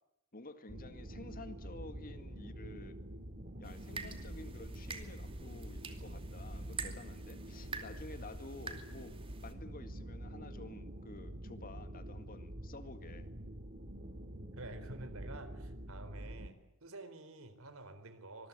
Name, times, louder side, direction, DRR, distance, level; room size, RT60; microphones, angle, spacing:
voice 1, 0.3-3.0 3.6-9.1 9.4-13.3, left 2 dB, 40° left, 10 dB, 2.0 m, -51 dB
sound 1, 0.7-16.5, right 1 dB, 40° right, 2.2 m, -46 dB
sound 2, 3.6-9.5, right 4 dB, 25° right, 2.6 m, -48 dB
voice 2, 14.6-16.5 16.8-18.5, right 2 dB, 70° right, 11 dB, 4.1 m, -49 dB
25.5 x 22.0 x 9.9 m, 0.88 s
head